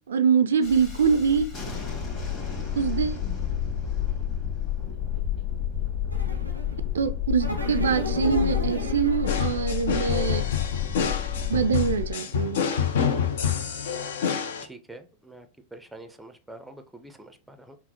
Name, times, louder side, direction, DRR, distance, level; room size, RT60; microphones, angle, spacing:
voice 1, 0.1-1.5 2.8-3.2 6.9-10.5 11.5-12.6, right 6 dB, 65° right, 0.3 m, -24 dB
Thunderstorm, 0.6-12.1, left 10 dB, 35° left, 1.7 m, -30 dB
sound 1, 6.1-6.8 7.4-9.7, equal, 90° left, 0.7 m, -33 dB
sound 2, 9.3-14.6, left 7 dB, 60° left, 0.5 m, -27 dB
voice 2, 14.6-17.8, right 2 dB, 5° right, 0.5 m, -46 dB
5.6 x 2.0 x 2.8 m
figure-of-eight pair, 90°, 0 cm